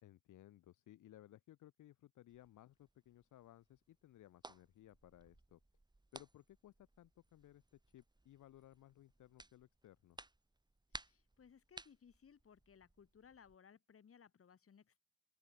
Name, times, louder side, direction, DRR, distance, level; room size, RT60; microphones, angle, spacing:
voice 1, 0.0-5.6 6.1-10.2, left 13 dB, 80° left, 3.7 m, -61 dB
sound 1, 2.3-13.6, right 2 dB, 15° right, 6.8 m, -59 dB
voice 2, 10.9-15.0, left 7 dB, 50° left, 6.7 m, -64 dB
open air
cardioid pair, 90°, 30 cm